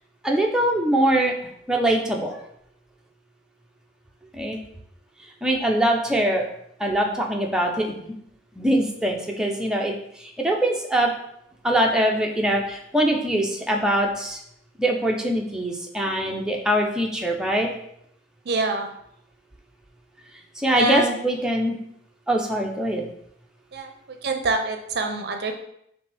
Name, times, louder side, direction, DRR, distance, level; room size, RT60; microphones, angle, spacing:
voice 1, 0.2-1.3 1.7-2.4 4.3-4.6 5.4-6.5 6.8-7.9 8.6-11.1 11.6-14.4 14.8-17.7 20.6-21.8 22.3-23.0, right 1 dB, 5° right, 0 dB, 0.5 m, -23 dB
voice 2, 18.5-18.9 20.7-21.2 23.7-23.9 24.2-25.6, right 2 dB, 55° right, 4 dB, 0.5 m, -25 dB
5.6 x 2.7 x 3.4 m, 0.73 s
head